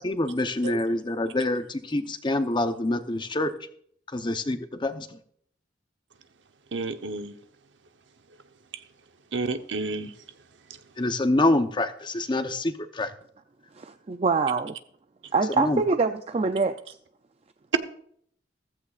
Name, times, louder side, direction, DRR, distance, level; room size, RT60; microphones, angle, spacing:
voice 1, 0.0-3.5 4.1-5.2 11.0-13.1 15.6-15.8, left 2 dB, 25° left, 0.8 m, -26 dB
voice 2, 6.7-7.3 9.3-10.1, right 3 dB, 85° right, 1.0 m, -30 dB
voice 3, 13.8-14.7 15.3-17.0, right 4 dB, 35° right, 0.4 m, -25 dB
15.0 x 14.0 x 2.5 m
head